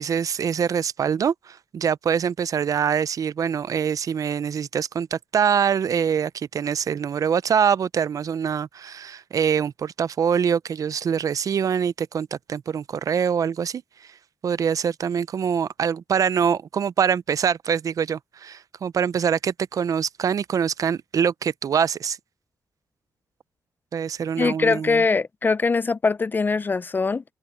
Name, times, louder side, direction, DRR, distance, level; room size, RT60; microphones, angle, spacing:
voice 1, 0.0-14.1 14.4-22.2 23.9-25.0, right 7 dB, 55° right, 0.5 m, -24 dB
voice 2, 24.4-27.2, left 4 dB, 30° left, 0.4 m, -22 dB
cardioid pair, 105°, 7 cm